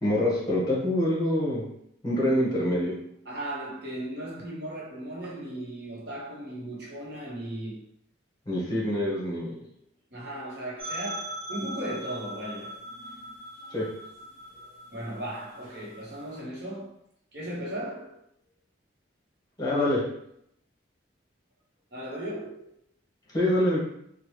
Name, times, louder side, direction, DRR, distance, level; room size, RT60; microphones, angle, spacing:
voice 1, 0.0-1.6 2.0-2.9 8.5-9.6 13.7-13.9 19.6-20.0 23.3-23.9, left 1 dB, 20° left, 0.9 m, -25 dB
voice 2, 3.2-7.8 10.1-12.8 14.5-16.9 17.3-18.2 21.9-22.8, right 1 dB, 55° right, 0.9 m, -37 dB
sound 1, 10.8-16.4, right 1 dB, 80° right, 0.7 m, -41 dB
2.9 x 2.2 x 3.0 m
head